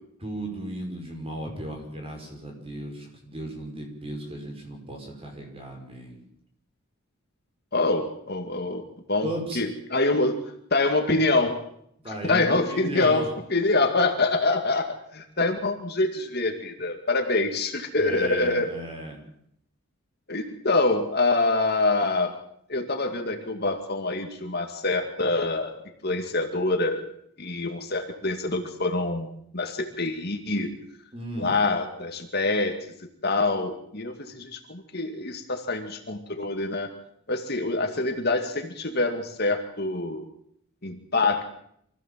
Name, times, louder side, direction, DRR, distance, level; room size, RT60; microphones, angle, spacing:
voice 1, 0.2-6.2 9.2-9.6 12.0-13.3 17.9-19.2 31.1-31.6, right 1 dB, 25° right, 2 dB, 5.7 m, -35 dB
voice 2, 7.7-8.8 9.1-10.4 10.7-11.6 12.2-18.7 20.3-22.4 22.7-25.7 26.0-27.1 27.4-29.3 29.5-30.7 31.4-32.8 33.2-36.9 37.3-40.2 40.8-41.4, left 2 dB, 45° left, 5 dB, 2.2 m, -25 dB
25.5 x 15.5 x 7.5 m, 0.71 s
head